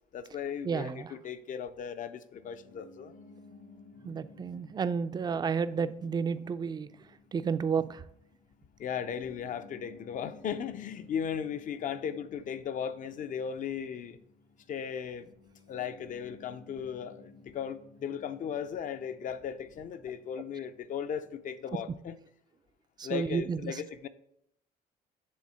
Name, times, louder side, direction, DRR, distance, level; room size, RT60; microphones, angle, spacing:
voice 1, 0.1-3.2 8.8-14.2 14.7-15.3 15.7-22.1 23.0-24.1, left 8 dB, 50° left, 11 dB, 0.5 m, -37 dB
voice 2, 0.6-1.1 4.0-6.9 7.3-8.0 23.0-23.8, right 6 dB, 25° right, 13 dB, 0.4 m, -31 dB
Piano, 2.3-21.7, left 3 dB, 70° left, 1.8 m, -57 dB
7.6 x 3.5 x 5.5 m, 0.74 s
cardioid pair, 110°, 17 cm